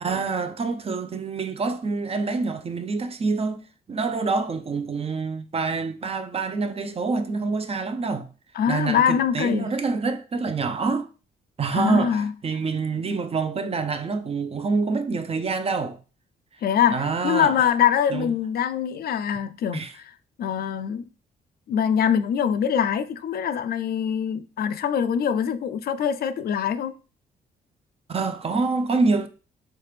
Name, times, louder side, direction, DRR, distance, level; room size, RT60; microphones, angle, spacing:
voice 1, 0.0-8.3 8.6-11.1 11.6-16.0 16.9-17.7 18.1-18.3 19.7-19.9 28.1-29.3, right 4 dB, 35° right, 0.5 m, -26 dB
voice 2, 8.6-9.7 11.7-12.3 16.6-20.1 20.4-21.1 21.7-26.9, left 8 dB, 60° left, 0.4 m, -23 dB
3.3 x 2.8 x 3.2 m
supercardioid pair, 65°, 18 cm